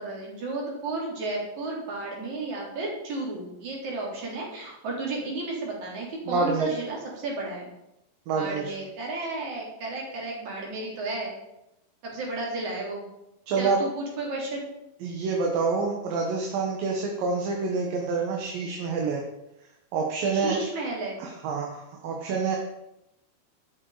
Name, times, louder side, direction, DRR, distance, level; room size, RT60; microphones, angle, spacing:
voice 1, 0.0-7.7 8.3-11.3 12.0-13.1 13.6-14.7 20.3-21.2, right 2 dB, 50° right, -3 dB, 5.0 m, -33 dB
voice 2, 6.3-6.7 8.3-8.7 13.5-13.8 15.0-19.2 19.9-20.6 21.2-22.6, right 4 dB, 65° right, 0 dB, 3.1 m, -27 dB
12.0 x 11.0 x 5.1 m, 0.87 s
omnidirectional pair, 4.5 m